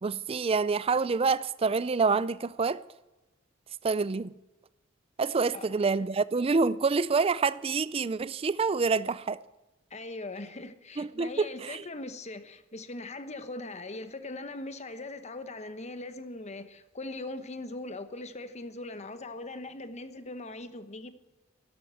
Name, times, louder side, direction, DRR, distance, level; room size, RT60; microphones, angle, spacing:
voice 1, 0.0-2.8 3.8-4.3 5.2-9.4 11.0-11.9, right 4 dB, 30° right, 0.4 m, -27 dB
voice 2, 9.9-21.1, left 2 dB, 35° left, 1.0 m, -40 dB
12.0 x 11.5 x 8.0 m
head